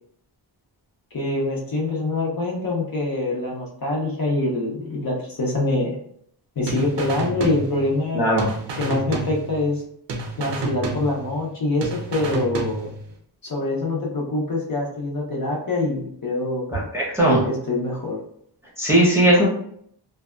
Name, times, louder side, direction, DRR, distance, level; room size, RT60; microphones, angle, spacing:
voice 1, 1.1-6.0 6.6-8.2 8.8-9.8 10.4-12.9 13.4-16.6 17.3-18.2, left 2 dB, 55° left, -3 dB, 0.6 m, -25 dB
sound 1, 6.7-8.1 8.4-9.8 10.1-11.5 11.8-13.1, right 3 dB, 75° right, 0.5 m, -30 dB
voice 2, 8.1-8.5 16.7-17.4 18.8-19.4, right 1 dB, 5° right, -6 dB, 0.7 m, -18 dB
2.6 x 2.2 x 2.2 m, 0.66 s
wide cardioid pair, 160°, 43 cm